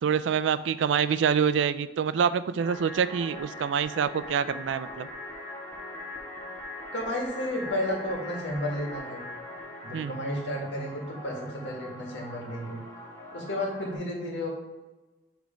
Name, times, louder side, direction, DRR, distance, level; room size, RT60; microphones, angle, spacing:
voice 1, 0.0-5.1 9.9-10.2, right 7 dB, 85° right, 14 dB, 0.3 m, -26 dB
sound 1, 2.6-14.0, left 1 dB, 15° left, 1.2 m, -41 dB
voice 2, 6.9-9.2 9.8-12.8 13.3-14.5, left 1 dB, 85° left, -1 dB, 1.7 m, -32 dB
7.1 x 3.4 x 5.1 m, 1.1 s
head